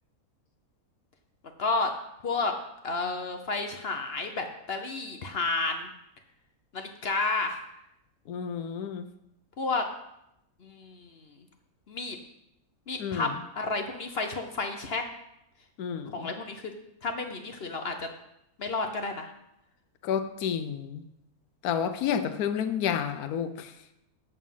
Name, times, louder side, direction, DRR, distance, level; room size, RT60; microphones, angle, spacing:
voice 1, 1.6-1.9 2.2-2.5 2.8-5.9 6.7-7.6 9.6-9.8 10.6-11.2 11.9-12.2 12.9-13.3 13.6-15.0 16.1-16.6 17.0-18.1 18.6-19.3, left 3 dB, 50° left, 5 dB, 0.9 m, -31 dB
voice 2, 8.3-9.1 13.0-13.3 15.8-16.3 20.0-21.0 21.6-23.7, left 8 dB, 80° left, 9 dB, 1.2 m, -30 dB
8.2 x 7.3 x 5.6 m, 0.82 s
omnidirectional pair, 1.6 m